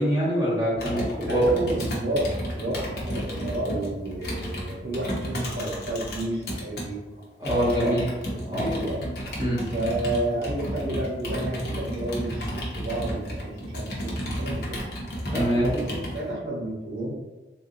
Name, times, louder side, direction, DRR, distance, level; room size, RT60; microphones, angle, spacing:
voice 1, 0.0-1.5 7.4-8.0 8.5-8.6 9.4-9.6 15.3-15.7, equal, 20° right, -10 dB, 1.3 m, -24 dB
Computer keyboard, 0.8-6.9 7.4-16.2, equal, 60° left, 0.8 m, -32 dB
voice 2, 1.2-7.0 7.4-7.9 8.3-9.0 9.7-14.8 15.6-17.2, right 1 dB, 85° right, -4 dB, 1.2 m, -31 dB
3.4 x 2.5 x 2.7 m, 1.2 s
head